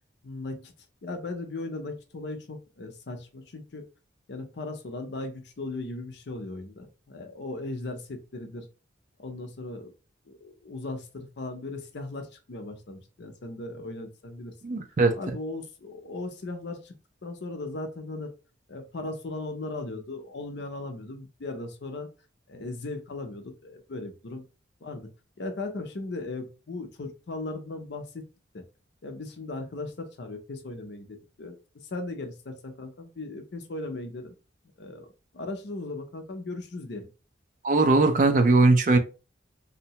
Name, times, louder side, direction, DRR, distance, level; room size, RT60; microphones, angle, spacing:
voice 1, 0.2-0.7 1.0-3.8 4.3-8.7 9.2-9.9 10.3-14.5 15.2-16.9 17.2-18.3 18.7-22.1 22.5-24.4 24.8-25.1 25.4-28.2 28.5-28.6 29.0-31.6 31.9-34.3 34.8-37.1, left 2 dB, 60° left, 0.5 m, -37 dB
voice 2, 14.6-15.1 37.6-39.0, right 3 dB, 40° right, 0.4 m, -20 dB
2.7 x 2.1 x 2.8 m
head